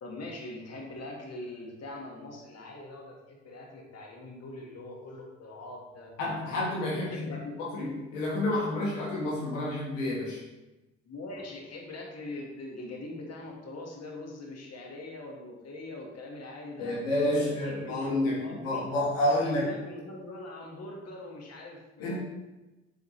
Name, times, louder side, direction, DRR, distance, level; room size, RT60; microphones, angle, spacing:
voice 1, 0.0-6.1 7.0-7.5 11.1-17.0 17.3-18.8 19.2-22.2, left 2 dB, 40° left, 0 dB, 1.6 m, -42 dB
voice 2, 6.2-7.3 7.6-10.4 16.8-19.8 22.0-22.2, left 1 dB, 80° left, -5 dB, 1.5 m, -29 dB
7.7 x 4.9 x 3.2 m, 1.1 s
figure-of-eight pair, 45°, 38 cm